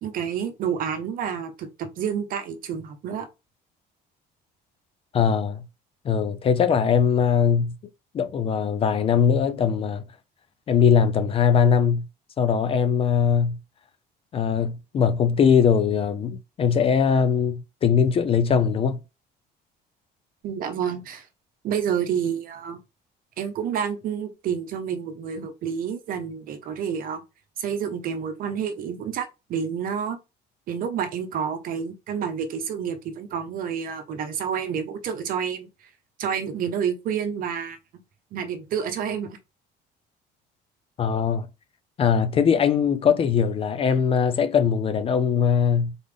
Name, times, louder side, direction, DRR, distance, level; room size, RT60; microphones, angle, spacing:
voice 1, 0.0-3.3 20.4-21.3 21.6-22.8 23.4-27.2 27.6-30.2 30.7-35.7 36.2-37.8 38.3-39.4, right 7 dB, 50° right, 0.8 m, -29 dB
voice 2, 5.1-5.6 6.0-7.7 8.1-10.0 10.7-12.1 12.4-13.6 14.3-19.0 41.0-41.5 42.0-45.9, left 7 dB, 30° left, 0.4 m, -21 dB
3.9 x 3.5 x 3.4 m
cardioid pair, 165°, 19 cm